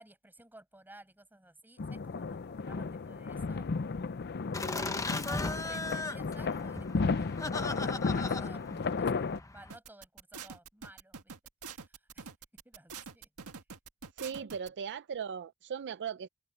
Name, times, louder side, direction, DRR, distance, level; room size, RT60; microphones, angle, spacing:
voice 1, 0.0-3.7 4.6-11.3 11.7-12.3 12.6-13.3 14.3-14.6, right 1 dB, 10° right, 7.1 m, -55 dB
sound 1, 1.8-9.4, left 4 dB, 50° left, 0.5 m, -34 dB
Laughter, 4.5-9.7, left 2 dB, 15° left, 0.8 m, -38 dB
sound 2, 9.7-14.7, right 6 dB, 80° right, 1.6 m, -46 dB
voice 2, 14.2-16.3, right 7 dB, 55° right, 0.4 m, -38 dB
head